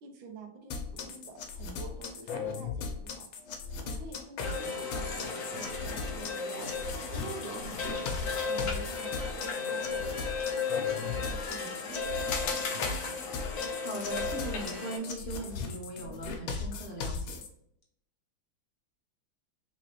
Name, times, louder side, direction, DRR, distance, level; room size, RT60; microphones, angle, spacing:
voice 1, 0.0-3.2 3.8-10.1 10.5-13.3, right 3 dB, 75° right, 3 dB, 1.5 m, -47 dB
sound 1, 0.7-17.5, left 5 dB, 90° left, 1.5 m, -38 dB
sound 2, 4.4-15.0, left 4 dB, 65° left, 0.8 m, -35 dB
voice 2, 13.8-17.4, right 1 dB, 35° left, -2 dB, 0.9 m, -39 dB
4.0 x 3.0 x 3.0 m, 0.74 s
omnidirectional pair, 2.2 m